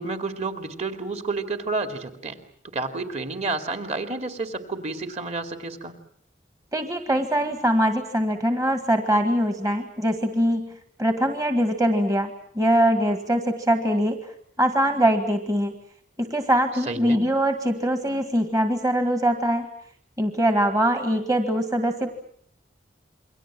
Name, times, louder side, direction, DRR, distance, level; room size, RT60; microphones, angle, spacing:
voice 1, 0.0-2.4 2.7-5.9 16.9-17.2, right 3 dB, 35° right, 6 dB, 2.6 m, -30 dB
voice 2, 6.7-12.3 12.5-14.3 14.6-15.7 16.2-19.7 20.2-22.1, equal, 20° right, 6 dB, 1.8 m, -22 dB
28.5 x 23.5 x 7.6 m, 0.64 s
head